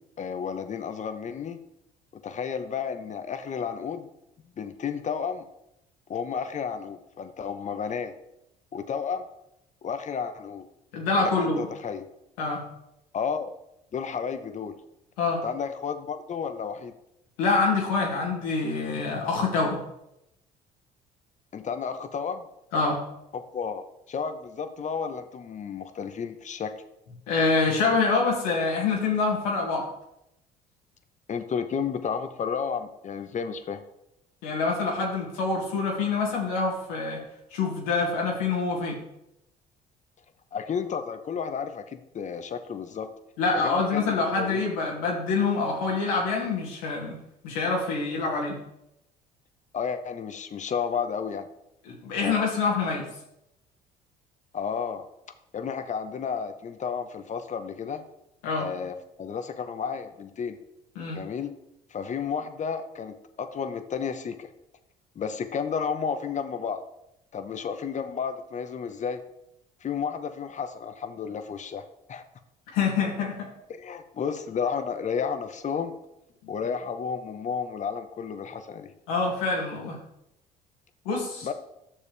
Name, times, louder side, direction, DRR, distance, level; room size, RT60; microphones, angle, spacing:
voice 1, 0.2-1.6 2.1-4.1 4.6-5.5 6.1-8.1 8.7-9.3 9.8-10.7 11.2-12.0 13.1-13.5 13.9-14.8 15.4-17.0 21.5-22.5 23.3-26.7 31.3-33.8 40.5-43.1 43.6-44.6 49.7-51.5 54.5-55.1 55.5-58.0 58.6-60.6 61.1-61.5 61.9-64.5 65.1-66.8 67.3-69.2 69.8-71.8 72.1-72.2 73.7-76.0 76.5-78.9 81.4-81.5, left 6 dB, 40° left, 9 dB, 0.9 m, -32 dB
voice 2, 10.9-11.7 12.4-12.6 15.2-15.4 17.4-19.8 22.7-23.0 27.3-29.9 34.4-37.2 37.5-39.0 43.4-47.2 47.4-48.6 51.9-53.1 58.4-58.7 61.0-61.2 72.7-73.5 79.1-80.0 81.0-81.5, left 4 dB, 85° left, -1 dB, 2.2 m, -26 dB
10.0 x 6.7 x 3.4 m, 0.84 s
hypercardioid pair, 65°, 18 cm